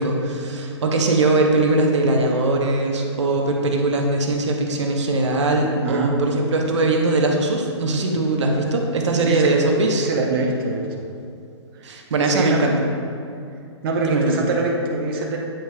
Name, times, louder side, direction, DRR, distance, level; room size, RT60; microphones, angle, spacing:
voice 1, 0.0-10.1 11.8-12.9 14.0-14.4, right 2 dB, 80° right, 1 dB, 0.9 m, -20 dB
voice 2, 5.8-6.1 9.2-9.6 9.9-11.0 11.7-12.6 13.8-15.4, right 2 dB, 50° right, 0 dB, 0.8 m, -24 dB
8.9 x 5.0 x 2.2 m, 2.5 s
hypercardioid pair, 140°, 15 cm